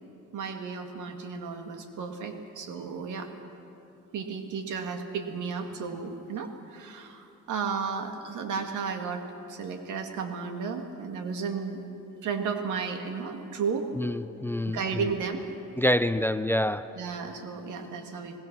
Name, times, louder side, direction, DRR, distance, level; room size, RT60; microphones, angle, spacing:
voice 1, 0.3-3.3 4.1-11.8 12.2-13.9 14.7-15.5 17.0-18.4, right 5 dB, 80° right, 5 dB, 2.1 m, -33 dB
voice 2, 14.0-15.1 15.8-16.9, left 1 dB, 5° left, 13 dB, 0.5 m, -27 dB
26.0 x 19.0 x 6.1 m, 2.8 s
cardioid pair, 90°, 30 cm